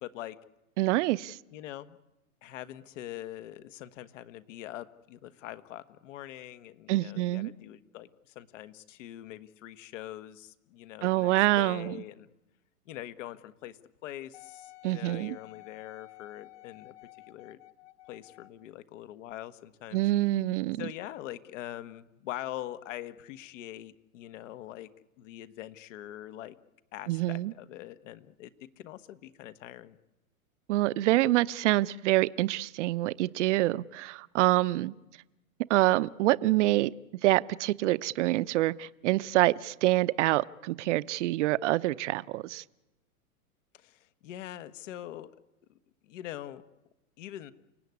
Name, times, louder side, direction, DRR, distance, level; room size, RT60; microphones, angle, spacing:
voice 1, 0.0-0.4 1.5-2.0 2.4-12.3 12.9-16.9 17.3-17.6 18.1-20.0 20.8-24.9 25.2-26.6 26.9-30.0 43.7-45.3 46.1-46.6 47.2-47.5, left 13 dB, 55° left, 13 dB, 1.6 m, -43 dB
voice 2, 0.8-1.4 6.9-7.5 11.0-11.9 14.8-15.4 19.9-20.8 27.1-27.5 30.7-34.9 35.7-36.9 37.2-42.6, right 17 dB, 55° right, 16 dB, 0.9 m, -26 dB
Wind instrument woodwind instrument, 14.3-18.6 19.3-19.4, left 18 dB, 35° left, 1.8 m, -52 dB
29.5 x 17.5 x 9.7 m, 1.0 s
hypercardioid pair, 130°, 43 cm